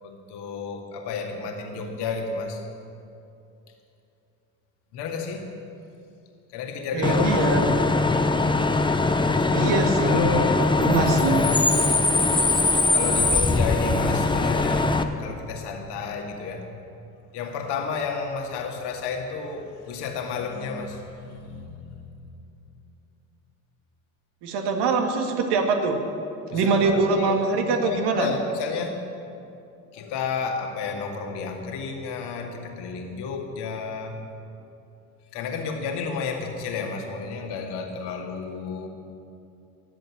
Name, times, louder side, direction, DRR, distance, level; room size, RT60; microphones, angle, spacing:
voice 1, 0.0-2.6 4.9-5.5 6.5-7.8 9.4-11.7 12.9-16.7 17.3-22.3 26.5-29.0 29.9-34.2 35.3-38.9, left 5 dB, 60° left, 3 dB, 2.3 m, -31 dB
voice 2, 6.9-7.7 9.5-10.4 10.8-11.4 24.4-26.0 26.5-28.3, right 4 dB, 60° right, 4 dB, 2.1 m, -23 dB
Bus / Idling / Screech, 7.0-15.0, left 3 dB, 10° left, 1.0 m, -21 dB
18.5 x 7.8 x 8.9 m, 2.7 s
hypercardioid pair, 60°, 45 cm